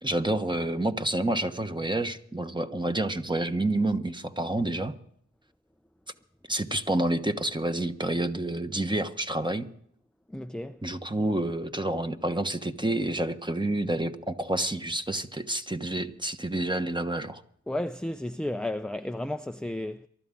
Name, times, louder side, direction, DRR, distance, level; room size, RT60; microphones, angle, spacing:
voice 1, 0.0-4.9 6.5-9.7 10.8-17.4, right 1 dB, 15° right, 1.2 m, -28 dB
voice 2, 10.3-10.8 17.7-20.1, left 1 dB, 5° left, 0.5 m, -33 dB
23.5 x 13.0 x 3.8 m
cardioid pair, 40°, 30 cm